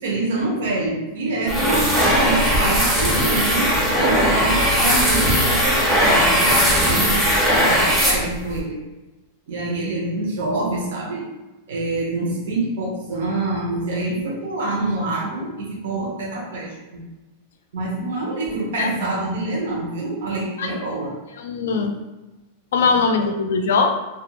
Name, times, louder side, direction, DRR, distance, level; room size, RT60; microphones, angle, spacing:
voice 1, 0.0-8.8 9.5-11.2 11.7-17.0 17.7-21.1 22.8-22.9 23.2-23.3, right 2 dB, 70° right, -3 dB, 0.6 m, -26 dB
sound 1, 1.5-8.6, equal, ahead, 0.5 m, -18 dB
voice 2, 21.4-21.9 22.7-23.9, left 4 dB, 90° left, 5 dB, 0.3 m, -20 dB
2.3 x 2.1 x 2.8 m, 1.1 s
supercardioid pair, 170°, 0 cm